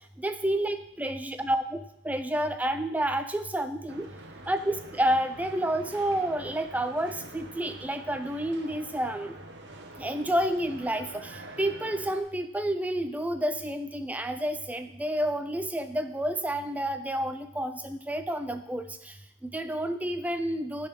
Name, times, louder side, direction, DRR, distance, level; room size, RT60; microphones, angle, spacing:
voice 1, 0.2-4.1 4.5-9.4 10.0-20.9, right 1 dB, 5° right, 9 dB, 0.4 m, -30 dB
sound 1, 3.9-12.2, right 2 dB, 50° right, 0.9 m, -46 dB
9.6 x 4.1 x 5.8 m, 0.78 s
head